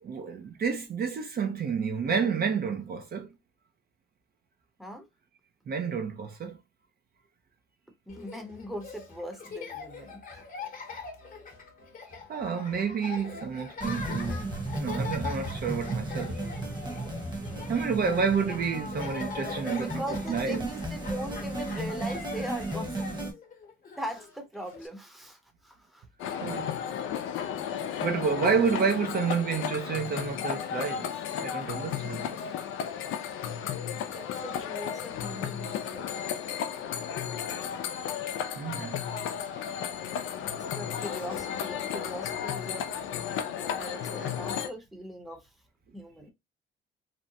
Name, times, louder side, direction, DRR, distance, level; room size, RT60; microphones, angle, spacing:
voice 1, 0.0-3.3 5.7-6.6 12.3-14.5 14.8-16.4 17.7-20.7 26.4-26.7 28.0-31.1 31.4-32.4 38.6-39.0 43.9-44.1, right 6 dB, 50° right, 0.6 m, -29 dB
voice 2, 2.0-2.4 4.8-5.1 8.1-10.2 19.8-23.3 24.0-26.1 28.0-28.3 34.1-36.1 40.7-42.9 43.5-45.5 45.9-46.3, right 1 dB, ahead, 0.7 m, -40 dB
Laughter, 8.1-24.9, left 5 dB, 45° left, 0.8 m, -42 dB
sound 1, 13.8-23.3, right 2 dB, 20° right, 1.0 m, -35 dB
sound 2, 26.2-44.7, left 8 dB, 85° left, 0.4 m, -34 dB
2.7 x 2.1 x 2.7 m
cardioid pair, 90°, 20 cm